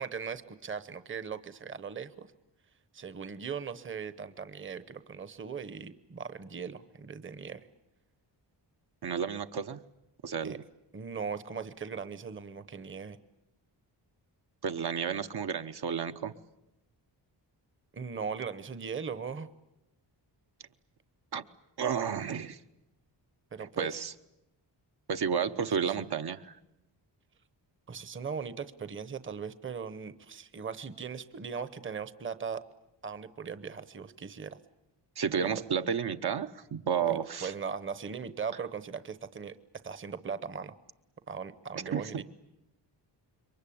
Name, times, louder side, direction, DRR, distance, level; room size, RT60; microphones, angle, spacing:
voice 1, 0.0-2.3 2.9-7.7 10.4-10.6 10.9-13.2 17.9-19.5 23.5-24.0 27.9-32.6 33.0-34.6 35.3-35.6 37.0-40.7 41.3-42.2, right 6 dB, 25° right, 13 dB, 0.9 m, -39 dB
voice 2, 9.0-9.8 10.2-10.6 14.6-16.3 21.3-21.4 21.8-22.6 23.8-24.1 25.1-26.6 35.2-37.5 41.9-42.2, right 7 dB, 60° right, 7 dB, 1.0 m, -31 dB
27.5 x 23.0 x 8.6 m, 0.90 s
wide cardioid pair, 165°, 44 cm